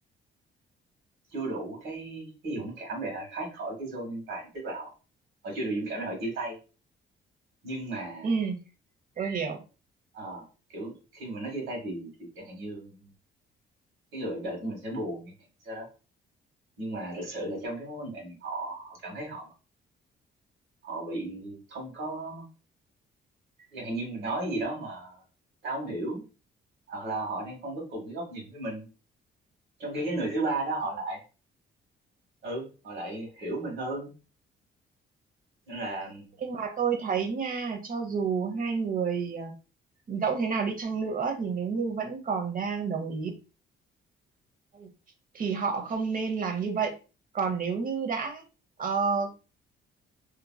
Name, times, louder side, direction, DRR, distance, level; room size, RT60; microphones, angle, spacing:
voice 1, 1.3-4.9 5.4-6.6 7.6-8.3 10.1-13.1 14.1-15.3 15.6-15.9 16.8-19.5 20.8-22.4 23.7-25.2 25.6-26.2 26.9-28.9 29.8-31.2 32.4-34.1 35.7-36.3, right 2 dB, 75° right, -1 dB, 1.5 m, -35 dB
voice 2, 8.2-8.6 9.2-9.6 36.4-39.5 40.1-43.3 44.7-44.9 45.3-46.9 47.3-48.4 48.8-49.3, right 5 dB, 45° right, 5 dB, 0.7 m, -29 dB
2.8 x 2.7 x 2.2 m, 0.33 s
cardioid pair, 90°, 20 cm